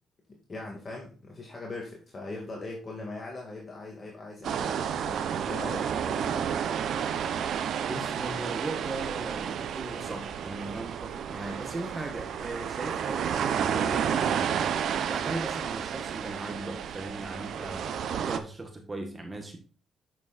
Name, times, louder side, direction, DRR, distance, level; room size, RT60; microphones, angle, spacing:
voice 1, 0.3-6.6, left 2 dB, 35° left, -1 dB, 2.4 m, -40 dB
sound 1, 4.4-18.4, right 8 dB, 70° right, 0.9 m, -31 dB
voice 2, 7.9-14.6 15.1-19.6, right 2 dB, 25° right, 4 dB, 1.6 m, -38 dB
9.1 x 7.1 x 2.6 m, 0.39 s
cardioid pair, 90°, 0 cm